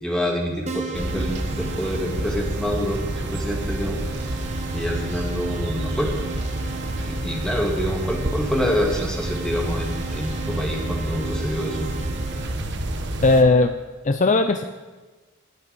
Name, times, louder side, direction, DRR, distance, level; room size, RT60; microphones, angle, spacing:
voice 1, 0.0-4.4 4.7-6.1 6.6-6.7 7.0-11.9, equal, 5° left, -1 dB, 2.0 m, -27 dB
Keyboard (musical), 0.7-12.5, right 4 dB, 30° right, 1.2 m, -37 dB
sound 1, 0.9-13.4, right 1 dB, 55° right, 1.2 m, -29 dB
voice 2, 13.2-13.7 14.0-14.6, left 3 dB, 35° left, 8 dB, 0.5 m, -17 dB
19.0 x 9.0 x 5.3 m, 1.3 s
head